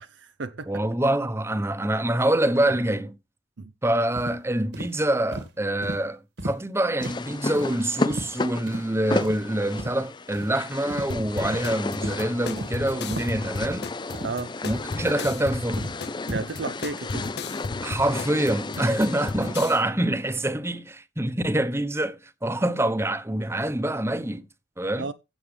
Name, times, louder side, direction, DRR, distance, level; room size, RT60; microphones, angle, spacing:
voice 1, 0.0-0.7 3.6-3.7 14.2-14.5 16.3-17.3 18.8-19.0 25.0-25.1, right 3 dB, 85° right, 0.7 m, -33 dB
voice 2, 0.7-3.2 3.8-13.9 14.6-15.9 17.8-24.5 24.8-25.1, right 1 dB, 15° right, 1.0 m, -25 dB
sound 1, 4.2-4.4 4.7-4.9 5.3-5.5 5.8-6.0 6.4-6.6 7.0-7.2 7.6-7.7 8.1-8.3 8.7-8.8 9.2-9.4 9.8-9.9 10.3-10.5 10.9-11.1 11.5-11.7 12.0-12.2 12.6-12.7 13.1-13.3 13.6-13.8 14.1-14.3 14.7-14.9 15.2-16.0 16.3-16.5, right 1 dB, 70° right, 2.1 m, -35 dB
sound 2, 7.0-19.8, left 3 dB, 25° left, 0.5 m, -34 dB
sound 3, 11.1-19.8, left 4 dB, 60° left, 0.7 m, -35 dB
16.0 x 7.3 x 3.3 m
head